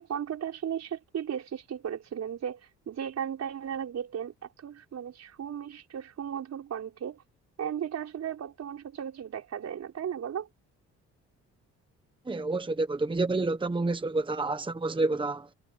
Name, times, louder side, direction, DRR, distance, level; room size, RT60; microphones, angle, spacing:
voice 1, 0.0-2.6 2.9-7.2 7.6-10.5, right 8 dB, 60° right, 5.1 m, -35 dB
voice 2, 12.3-15.5, right 3 dB, 15° right, 1.2 m, -29 dB
cardioid pair, 90°, 30 cm